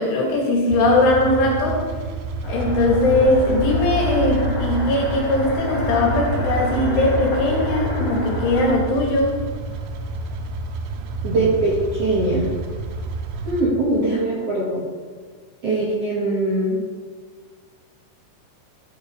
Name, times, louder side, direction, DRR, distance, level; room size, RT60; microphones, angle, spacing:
voice 1, 0.0-1.8 2.5-9.4, left 2 dB, 80° left, -2 dB, 4.7 m, -20 dB
sound 1, 0.7-13.6, right 4 dB, 90° right, 3.2 m, -30 dB
sound 2, 2.4-8.7, equal, 35° left, 4.1 m, -27 dB
voice 2, 11.2-12.5 13.4-14.8 15.6-16.8, right 2 dB, 50° right, -6 dB, 1.9 m, -21 dB
13.5 x 7.1 x 4.8 m, 1.5 s
omnidirectional pair, 5.4 m